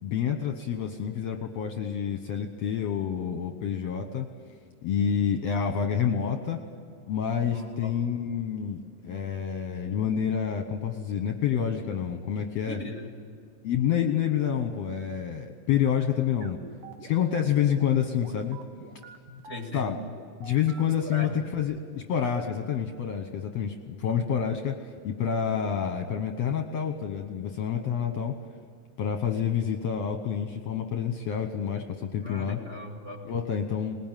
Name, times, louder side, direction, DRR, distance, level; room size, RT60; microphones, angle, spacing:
voice 1, 0.0-4.3 4.8-6.6 7.1-12.8 13.6-16.6 17.0-18.6 19.7-20.0 20.4-24.8 25.0-28.4 29.0-32.6 33.3-34.0, left 8 dB, 65° left, 5 dB, 1.9 m, -28 dB
voice 2, 7.4-7.9 12.7-13.2 19.4-19.9 21.0-21.4 24.0-24.1 32.2-33.3, left 2 dB, 20° right, 1 dB, 2.2 m, -39 dB
sound 1, 16.4-21.6, right 5 dB, 55° right, 2.4 m, -44 dB
21.0 x 20.0 x 9.1 m, 2.2 s
omnidirectional pair, 3.8 m